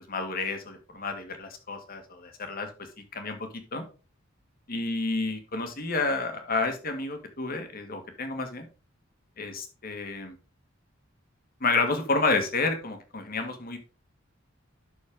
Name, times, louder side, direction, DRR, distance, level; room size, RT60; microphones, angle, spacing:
voice 1, 0.1-2.7 3.1-3.4 3.7-3.8 4.7-8.7 9.4-10.3 11.6-13.8, left 3 dB, 45° left, 6 dB, 1.7 m, -30 dB
11.5 x 4.2 x 3.7 m, 0.33 s
head